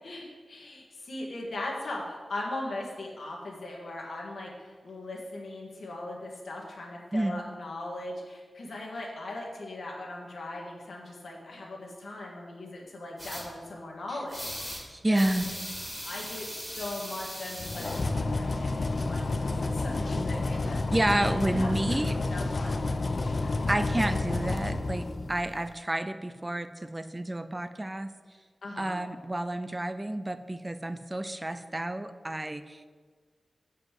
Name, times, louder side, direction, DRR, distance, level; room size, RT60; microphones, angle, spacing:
voice 1, 0.0-14.8 15.1-15.4 16.0-21.7 22.1-22.9 23.3-23.5 28.6-29.0, left 2 dB, 75° left, -2 dB, 1.7 m, -39 dB
sound 1, 13.2-13.4 14.3-14.8 15.1-18.0, equal, ahead, 2.0 m, -39 dB
voice 2, 14.9-15.5 20.9-22.2 23.7-28.1 28.8-32.8, right 1 dB, 15° right, 11 dB, 0.4 m, -30 dB
sound 2, 17.6-25.6, left 3 dB, 45° left, 0.5 m, -30 dB
7.4 x 5.4 x 7.4 m, 1.5 s
wide cardioid pair, 130°, 0 cm